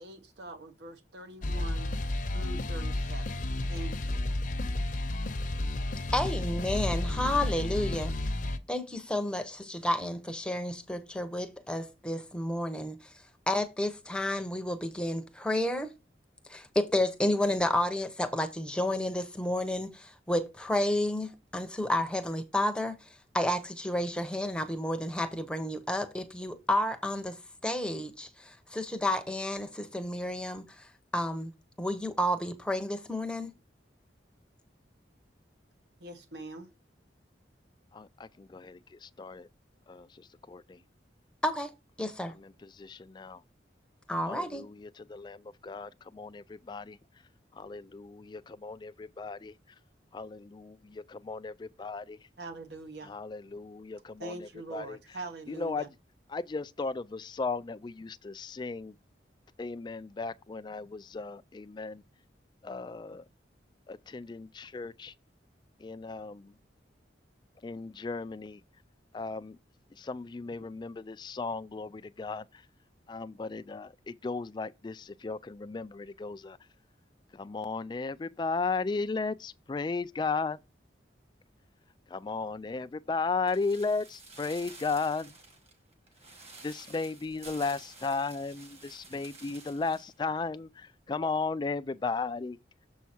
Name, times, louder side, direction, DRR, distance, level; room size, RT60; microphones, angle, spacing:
voice 1, 0.0-1.9 2.3-4.3 36.0-36.7 52.4-53.2 54.2-55.9, right 2 dB, 65° right, 1.1 m, -43 dB
sound 1, 1.4-8.6, left 1 dB, 45° left, 0.7 m, -32 dB
voice 2, 6.1-8.1 8.7-13.0 13.5-15.9 16.5-23.0 23.3-27.4 27.6-30.6 31.1-31.5 31.8-33.5 41.4-41.7 42.0-42.3 44.1-44.6, left 1 dB, 5° left, 0.8 m, -31 dB
voice 3, 37.9-39.5 39.9-40.8 42.4-43.4 44.2-47.0 47.6-49.5 50.1-52.2 53.0-55.0 55.5-55.9 56.3-58.9 59.6-62.0 62.6-63.2 63.9-65.1 65.8-66.5 67.6-68.6 69.1-69.6 70.0-72.4 73.1-76.6 77.3-80.6 82.1-85.3 86.6-92.6, left 4 dB, 25° left, 0.3 m, -35 dB
sound 2, 83.5-90.2 90.4-90.5, right 3 dB, 35° right, 1.8 m, -51 dB
7.1 x 4.6 x 4.4 m
head